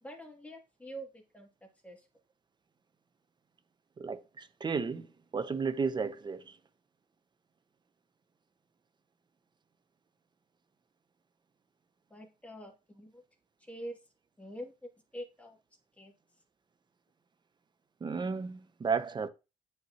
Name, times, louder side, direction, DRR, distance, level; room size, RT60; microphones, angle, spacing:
voice 1, 0.0-1.5 1.8-2.1 12.1-13.2 13.7-14.0 14.4-15.6 16.0-16.1, equal, 10° left, 2.3 m, -45 dB
voice 2, 4.0-6.6 18.0-19.3, right 5 dB, 25° right, 0.7 m, -33 dB
9.1 x 5.6 x 2.9 m
cardioid pair, 110°, 17 cm